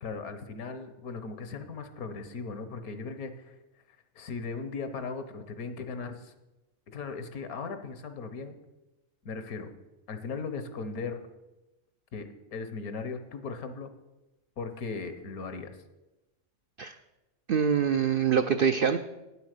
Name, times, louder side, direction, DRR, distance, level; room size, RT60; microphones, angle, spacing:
voice 1, 0.0-3.6 4.1-6.3 6.9-8.6 9.2-9.7 10.1-11.2 12.1-13.9 14.6-15.8, left 4 dB, 80° left, 9 dB, 1.5 m, -38 dB
voice 2, 17.5-19.0, right 7 dB, 90° right, 9 dB, 0.4 m, -24 dB
9.3 x 8.0 x 6.5 m, 1.0 s
omnidirectional pair, 1.5 m